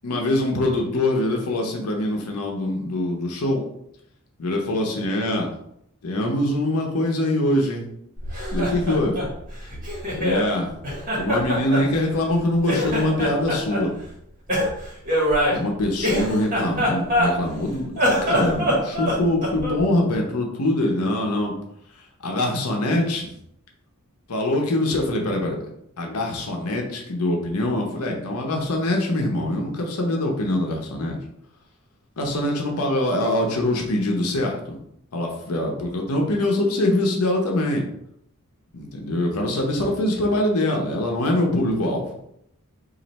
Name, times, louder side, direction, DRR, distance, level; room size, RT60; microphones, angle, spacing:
voice 1, 0.0-3.6 4.4-5.5 6.0-7.8 8.5-9.3 10.2-10.7 11.1-13.9 15.5-21.5 22.2-23.3 24.3-25.6 26.0-31.2 32.2-34.8 35.1-37.8 38.7-42.1, left 1 dB, 80° left, 1 dB, 0.7 m, -23 dB
Laughter, 8.2-10.5 10.8-12.4 12.6-13.8 14.5-17.6 17.9-19.8, equal, 40° right, 1.4 m, -24 dB
3.1 x 2.6 x 4.0 m, 0.74 s
head